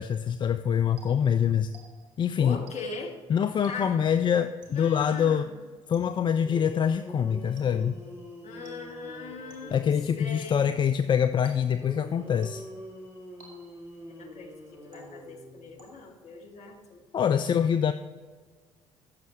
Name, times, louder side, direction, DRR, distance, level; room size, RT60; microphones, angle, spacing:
voice 1, 0.0-1.7 2.2-2.6 3.3-5.5 5.9-8.0 9.7-12.6 17.1-17.9, left 8 dB, 30° left, 10 dB, 0.4 m, -25 dB
sound 1, 1.0-2.2 2.7-3.1 3.6-4.1 4.6-5.0 5.9-6.4 7.6-8.0 8.6-9.1 9.5-9.9 10.4-10.8 11.4-11.9 12.4-12.9 13.4-14.0 14.9-15.4 15.8-16.3, right 3 dB, 60° right, 2.0 m, -55 dB
voice 2, 2.4-3.2 3.7-4.0 4.7-5.5 8.4-9.8 10.2-10.7 14.1-14.5 14.9-17.0, left 4 dB, 45° left, 1 dB, 1.5 m, -39 dB
sound 2, 6.4-10.5 11.8-15.8, equal, 15° right, 2.9 m, -45 dB
14.5 x 6.3 x 3.1 m, 1.5 s
figure-of-eight pair, 50°, 16 cm